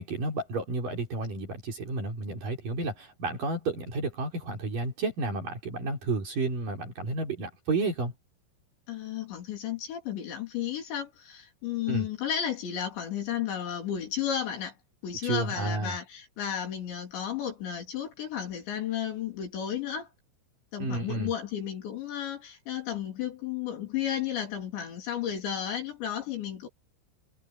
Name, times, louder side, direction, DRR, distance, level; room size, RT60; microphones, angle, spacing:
voice 1, 0.0-8.1 11.9-12.1 15.2-16.0 20.8-21.3, right 3 dB, 45° right, 5.7 m, -31 dB
voice 2, 8.9-14.7 15.0-20.1 20.7-26.7, left 9 dB, 60° left, 5.6 m, -33 dB
omnidirectional pair, 5.9 m